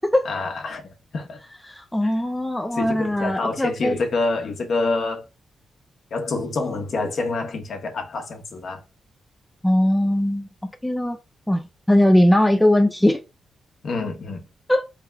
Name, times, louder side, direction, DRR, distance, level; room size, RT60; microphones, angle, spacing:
voice 1, 0.2-1.4 2.0-2.1 2.7-5.2 6.1-8.8 13.8-14.5, left 3 dB, 60° left, 1.0 m, -27 dB
voice 2, 1.7-3.9 9.6-10.5 10.8-11.2 11.5-13.2 14.7-14.8, left 1 dB, 5° left, 0.4 m, -19 dB
3.4 x 3.3 x 3.4 m
cardioid pair, 100°, 0 cm